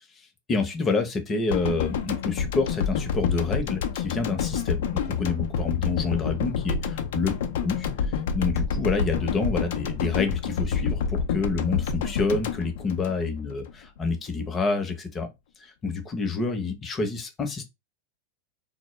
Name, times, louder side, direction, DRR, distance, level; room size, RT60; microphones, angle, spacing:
voice 1, 0.5-7.3 7.6-7.9 8.3-15.3 15.6-17.6, left 4 dB, 25° left, 0.7 m, -28 dB
sound 1, 1.5-13.7 14.0-14.1, left 6 dB, 70° left, 0.4 m, -28 dB
2.0 x 2.0 x 3.1 m
hypercardioid pair, 100°, 0 cm